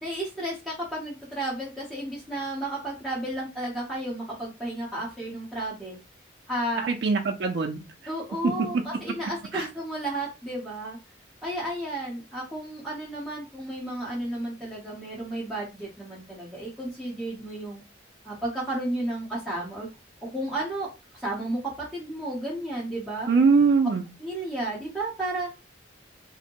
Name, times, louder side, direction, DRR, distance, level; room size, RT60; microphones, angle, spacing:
voice 1, 0.0-6.0 6.5-6.9 8.1-11.0 11.4-17.8 18.2-19.9 20.2-20.9 21.1-23.3 24.2-25.5, right 1 dB, ahead, -8 dB, 0.8 m, -32 dB
voice 2, 6.9-7.8 8.4-8.5 9.5-9.7 23.3-24.0, right 4 dB, 60° right, 3 dB, 0.4 m, -22 dB
2.6 x 2.1 x 2.9 m, 0.27 s
head